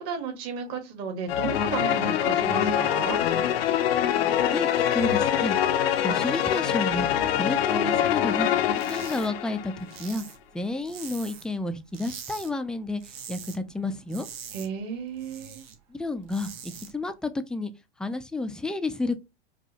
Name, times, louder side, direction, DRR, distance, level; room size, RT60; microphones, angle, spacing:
voice 1, 0.0-3.2 14.5-15.6, right 5 dB, 50° right, 1.6 m, -33 dB
sound 1, 1.3-9.8, left 10 dB, 70° left, 0.6 m, -24 dB
voice 2, 4.5-5.6 6.0-7.1 7.4-8.5 8.9-10.2 10.5-13.0 13.3-14.3 15.9-17.7 18.0-19.2, left 2 dB, 5° left, 0.3 m, -31 dB
sound 2, 8.7-9.3 9.6-11.6 11.9-12.5 12.8-13.6 13.9-15.7 16.1-16.9, right 7 dB, 70° right, 1.3 m, -43 dB
5.2 x 2.3 x 2.8 m
hypercardioid pair, 105°, 31 cm